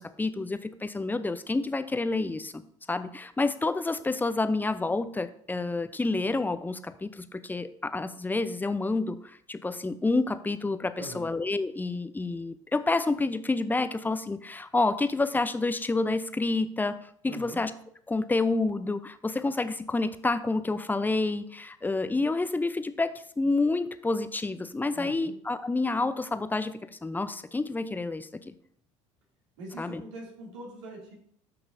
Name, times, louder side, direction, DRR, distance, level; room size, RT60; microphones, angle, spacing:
voice 1, 0.0-2.6 2.9-17.0 17.2-17.7 18.1-28.5 29.8-30.0, left 3 dB, 10° left, 12 dB, 0.6 m, -29 dB
voice 2, 17.3-17.6 24.9-25.3 29.6-31.1, right 2 dB, 75° right, -1 dB, 2.7 m, -42 dB
13.0 x 5.9 x 2.7 m, 0.66 s
hypercardioid pair, 65°, 16 cm